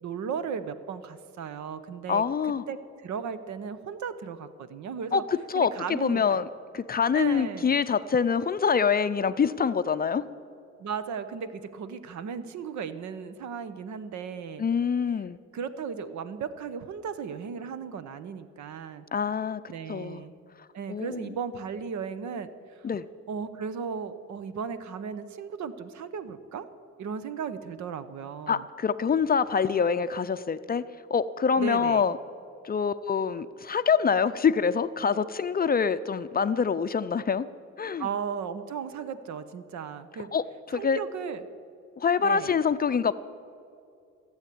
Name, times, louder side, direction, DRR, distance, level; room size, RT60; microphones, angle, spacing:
voice 1, 0.0-2.2 2.7-5.2 5.5-6.5 7.1-7.7 10.8-14.6 15.5-19.0 19.7-20.3 20.7-22.9 23.3-26.7 27.0-28.7 31.6-32.0 38.0-40.3 40.7-41.5 42.2-42.6, right 6 dB, 70° right, 13 dB, 0.9 m, -36 dB
voice 2, 2.1-2.6 5.1-6.5 6.7-10.2 14.6-15.4 19.1-19.6 19.9-20.2 20.9-21.3 22.8-23.0 28.5-30.8 31.1-32.2 32.6-37.5 37.8-38.1 40.3-41.0 42.0-43.1, left 6 dB, 30° left, 13 dB, 0.5 m, -25 dB
15.0 x 8.2 x 8.5 m, 2.4 s
cardioid pair, 90°, 30 cm